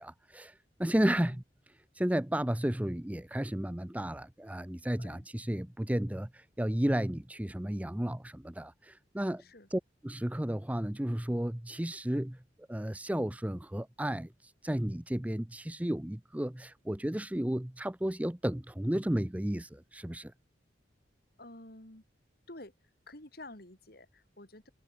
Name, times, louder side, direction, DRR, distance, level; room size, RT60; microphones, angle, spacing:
voice 1, 0.0-1.4 2.0-9.4 9.7-12.4 12.7-20.3, right 1 dB, 10° right, 0.6 m, -33 dB
voice 2, 1.1-1.4 5.0-5.2 9.4-9.7 21.4-22.0 22.5-22.7 23.1-24.7, left 1 dB, 55° left, 3.8 m, -50 dB
head